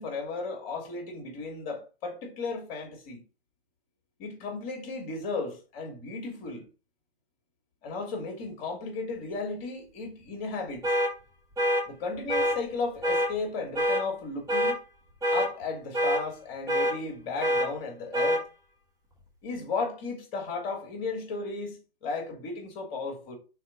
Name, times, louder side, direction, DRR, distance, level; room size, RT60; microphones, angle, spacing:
voice 1, 0.0-3.2 4.2-6.7 7.8-10.8 11.9-14.8 15.3-18.4 19.4-23.4, left 3 dB, 35° left, 2.9 m, -35 dB
sound 1, 10.8-11.1 11.6-11.8 12.3-12.6 13.0-13.3 13.8-14.0 14.5-14.8 15.2-15.5 15.9-16.2 16.7-16.9 17.4-17.7 18.1-18.4, equal, 10° right, 2.5 m, -25 dB
6.4 x 3.6 x 5.4 m
hypercardioid pair, 135°, 29 cm